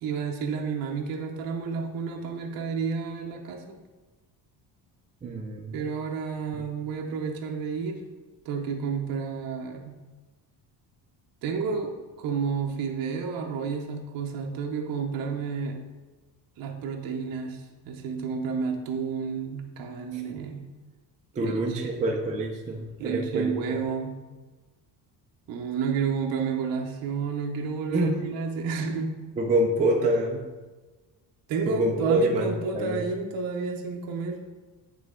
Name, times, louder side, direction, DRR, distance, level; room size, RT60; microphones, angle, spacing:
voice 1, 0.0-3.8 5.7-8.0 8.4-10.0 11.4-15.8 16.6-20.6 21.4-21.5 21.8-22.2 23.0-24.2 25.5-29.1 31.5-34.4, right 5 dB, 50° right, 1 dB, 0.8 m, -31 dB
voice 2, 5.2-5.8 6.5-6.7 21.4-23.8 27.9-28.2 29.4-30.4 31.7-33.0, right 1 dB, 20° right, -1 dB, 0.4 m, -26 dB
8.6 x 3.3 x 3.7 m, 1.3 s
cardioid pair, 175°, 43 cm